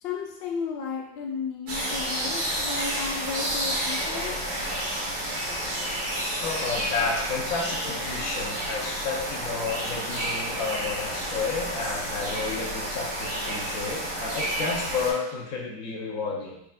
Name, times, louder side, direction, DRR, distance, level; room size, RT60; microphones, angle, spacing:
voice 1, 0.0-4.4 5.6-5.7, left 5 dB, 80° left, 0 dB, 0.5 m, -34 dB
sound 1, 1.7-15.1, right 1 dB, 60° right, 1.9 m, -30 dB
voice 2, 6.4-16.6, left 4 dB, 55° left, -2 dB, 1.1 m, -31 dB
4.7 x 4.6 x 2.5 m, 0.76 s
omnidirectional pair, 2.2 m